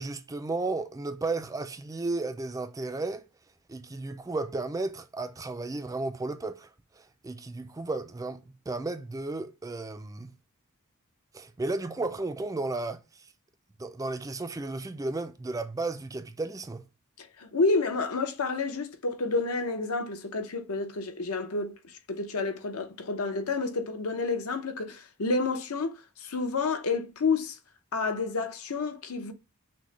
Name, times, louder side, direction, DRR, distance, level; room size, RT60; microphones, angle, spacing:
voice 1, 0.0-3.2 3.7-10.3 11.3-13.3 13.8-16.8, right 3 dB, 15° right, 0.3 m, -34 dB
voice 2, 17.2-21.7 22.1-27.6 27.9-29.3, left 3 dB, 75° left, 0.8 m, -29 dB
6.1 x 2.1 x 3.1 m
head